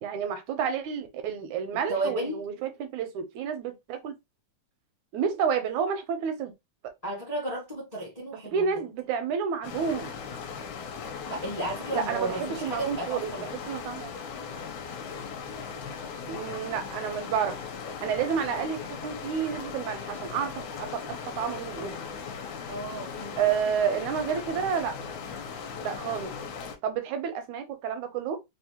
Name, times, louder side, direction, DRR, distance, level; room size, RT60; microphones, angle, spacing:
voice 1, 0.0-4.1 5.1-6.5 8.5-10.2 11.9-14.1 16.3-17.6 18.0-22.0 23.4-25.0 25.8-26.3 26.8-28.4, right 7 dB, 80° right, 2.0 m, -30 dB
voice 2, 1.9-2.4 7.0-8.6 11.3-13.5 22.7-23.4, right 1 dB, 40° left, 0.5 m, -33 dB
sound 1, 9.6-26.8, left 6 dB, 80° left, 2.2 m, -38 dB
5.4 x 2.0 x 2.8 m
omnidirectional pair, 3.5 m